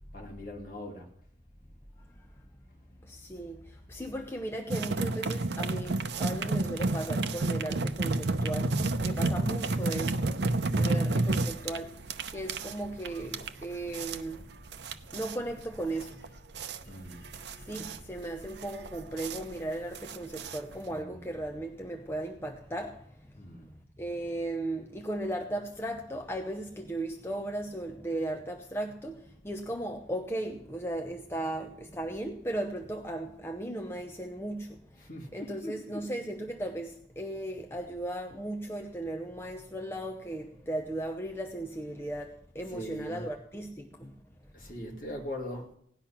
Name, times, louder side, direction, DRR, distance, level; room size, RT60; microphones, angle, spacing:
voice 1, 0.1-1.1 16.9-17.2 17.7-17.9 20.9-21.2 23.3-23.7 35.0-36.1 42.6-43.2 44.5-45.7, left 1 dB, 45° left, 2.6 m, -41 dB
voice 2, 3.0-14.6 15.1-16.4 16.8-23.5 24.0-44.1 44.4-44.5, right 1 dB, 15° left, 0.7 m, -37 dB
sound 1, 4.7-21.0, right 2 dB, 70° right, 0.7 m, -31 dB
17.0 x 10.0 x 5.9 m
head